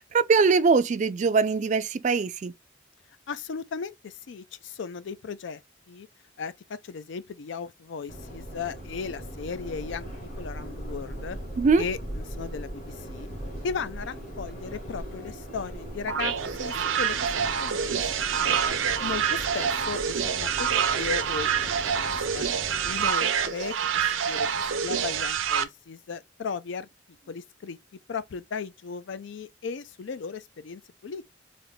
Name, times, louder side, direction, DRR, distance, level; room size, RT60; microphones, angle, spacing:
voice 1, 0.0-2.5 11.6-11.8, right 4 dB, 40° right, 0.3 m, -22 dB
voice 2, 3.3-5.6 5.9-6.1 6.4-10.1 10.4-11.4 11.8-13.3 13.6-18.0 18.4-18.6 19.0-22.5 22.8-24.5 24.8-26.9 27.3-27.8 28.1-31.2, left 5 dB, 70° left, 0.4 m, -36 dB
Subway metro underground, 8.1-23.1, right 1 dB, 40° left, 1.4 m, -39 dB
sound 1, 16.1-25.6, right 7 dB, 90° right, 0.5 m, -27 dB
3.4 x 2.6 x 3.8 m
head